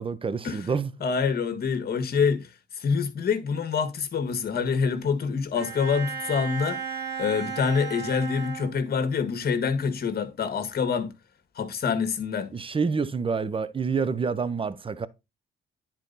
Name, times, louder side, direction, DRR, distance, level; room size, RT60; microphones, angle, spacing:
voice 1, 0.0-0.9 12.5-15.1, right 5 dB, 25° right, 0.8 m, -27 dB
voice 2, 1.0-2.5 2.8-6.8 7.2-11.1 11.5-12.5, left 6 dB, 50° left, 1.6 m, -26 dB
Bowed string instrument, 5.6-9.2, right 6 dB, 60° right, 2.1 m, -35 dB
10.0 x 4.4 x 4.0 m
cardioid pair, 90°, 20 cm